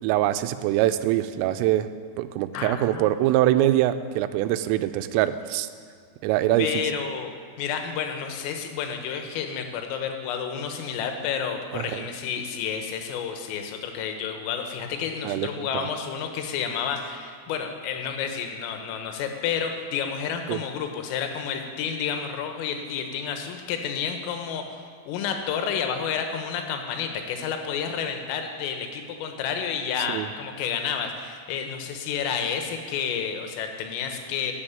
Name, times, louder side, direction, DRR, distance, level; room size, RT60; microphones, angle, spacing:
voice 1, 0.0-1.9 2.2-5.7 6.2-6.8 11.7-12.1 15.2-15.9 20.5-20.6 30.1-30.3, right 13 dB, 90° right, 11 dB, 3.2 m, -24 dB
voice 2, 2.5-3.1 3.6-3.7 6.6-7.3 7.6-34.5, left 7 dB, 85° left, 5 dB, 3.8 m, -30 dB
12.5 x 7.8 x 8.8 m, 2.1 s
omnidirectional pair, 5.8 m